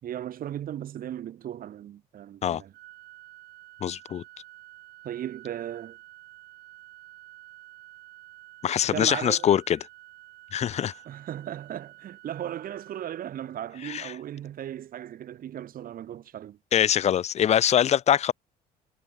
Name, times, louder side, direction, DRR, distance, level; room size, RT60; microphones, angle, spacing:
voice 1, 0.0-2.7 5.0-6.0 8.9-9.5 11.1-16.6, right 11 dB, 55° right, 2.9 m, -36 dB
Organ, 2.7-13.8, right 16 dB, 75° right, 2.0 m, -50 dB
voice 2, 3.8-4.2 8.6-9.8 10.5-10.9 13.8-14.1 16.7-18.3, left 10 dB, 40° left, 0.5 m, -23 dB
cardioid pair, 110°, 17 cm